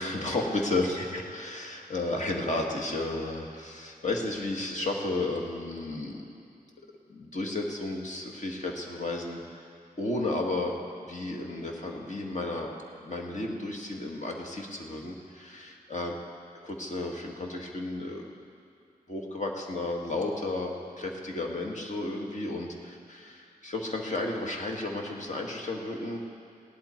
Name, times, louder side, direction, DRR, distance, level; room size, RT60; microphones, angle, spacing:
voice 1, 0.0-6.2 7.1-9.6 10.0-10.7 11.0-12.7 13.0-16.1 16.6-18.3 19.1-26.2, left 2 dB, 50° left, 0 dB, 1.7 m, -33 dB
17.0 x 11.0 x 4.4 m, 2.5 s
wide cardioid pair, 70°, 16 cm